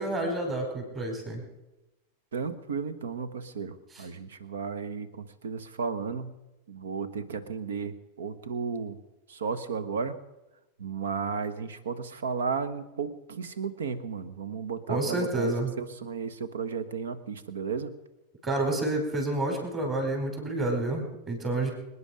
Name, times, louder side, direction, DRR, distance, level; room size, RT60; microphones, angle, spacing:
voice 1, 0.0-1.4 3.9-4.1 14.9-15.7 18.4-21.7, right 2 dB, 25° right, 3 dB, 4.8 m, -29 dB
voice 2, 2.3-6.3 6.7-9.0 9.3-10.1 10.8-15.5 15.8-17.9, right 5 dB, 65° right, 14 dB, 1.2 m, -34 dB
25.5 x 9.9 x 5.1 m, 0.99 s
figure-of-eight pair, 90°, 0 cm